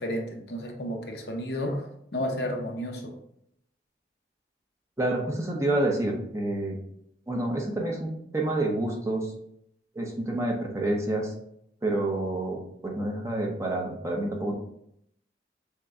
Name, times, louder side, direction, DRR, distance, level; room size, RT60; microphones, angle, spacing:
voice 1, 0.0-3.1, equal, 65° left, 2 dB, 0.8 m, -32 dB
voice 2, 5.0-6.8 7.3-9.3 9.9-11.3 11.8-14.5, right 1 dB, 15° right, -1 dB, 0.7 m, -28 dB
6.4 x 2.2 x 3.5 m, 0.72 s
head